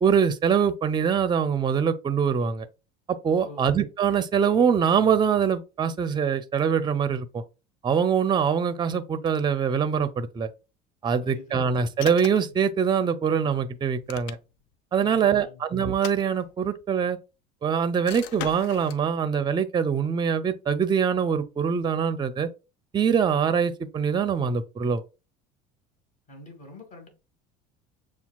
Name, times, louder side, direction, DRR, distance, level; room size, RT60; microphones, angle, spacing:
voice 1, 0.0-2.7 3.2-7.4 7.8-10.5 11.0-14.4 14.9-17.2 17.6-22.5 22.9-25.0, right 7 dB, 20° right, 0.5 m, -24 dB
voice 2, 3.4-3.7 11.2-11.6 15.0-15.6 26.3-27.1, left 2 dB, 40° left, 1.8 m, -45 dB
sound 1, 12.0-12.6 13.9-14.7 15.9-16.8 18.1-19.0, left 11 dB, 70° left, 0.5 m, -39 dB
7.0 x 2.4 x 2.3 m
supercardioid pair, 110°, 20 cm